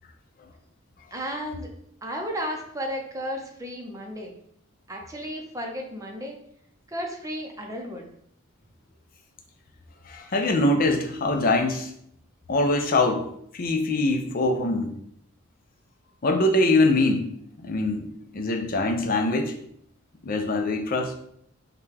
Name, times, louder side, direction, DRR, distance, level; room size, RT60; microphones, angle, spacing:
voice 1, 1.1-1.7 2.0-4.3 4.9-6.4 6.9-8.1, equal, 15° right, 1 dB, 0.6 m, -33 dB
voice 2, 10.1-11.9 12.5-13.3 13.5-14.9 16.2-17.3 17.6-18.1 18.3-19.5 20.2-21.1, left 2 dB, 45° left, 4 dB, 0.5 m, -23 dB
5.6 x 2.3 x 3.3 m, 0.69 s
head